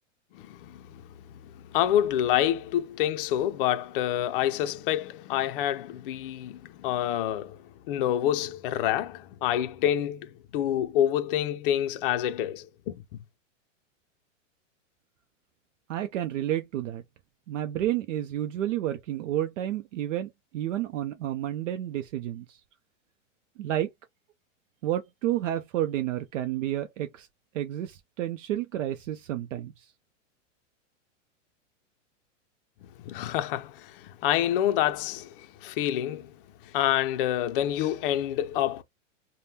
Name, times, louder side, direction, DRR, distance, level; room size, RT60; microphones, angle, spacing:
voice 1, 0.3-1.2 1.4-7.6 7.9-13.2 32.8-36.4 36.6-38.8, left 11 dB, 45° left, 0.5 m, -27 dB
voice 2, 15.9-17.0 17.5-22.6 23.6-23.9 24.8-27.3 27.5-29.9, right 12 dB, 70° right, 0.6 m, -30 dB
3.4 x 2.2 x 2.7 m
supercardioid pair, 150°, 38 cm